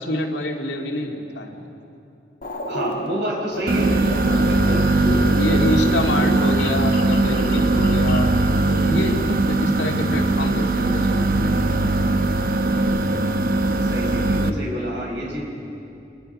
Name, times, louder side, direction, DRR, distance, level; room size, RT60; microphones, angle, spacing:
voice 1, 0.0-1.6 4.3-4.5 5.4-11.8 15.2-15.4, left 1 dB, 80° left, 1 dB, 2.3 m, -27 dB
sound 1, 2.4-8.4, left 1 dB, 45° left, 1.4 m, -33 dB
voice 2, 2.7-3.9 4.4-4.8 13.8-15.4, equal, 80° right, -1 dB, 5.1 m, -28 dB
sound 2, 3.7-14.5, right 2 dB, 50° right, 0.9 m, -20 dB
26.0 x 21.0 x 5.4 m, 2.7 s
head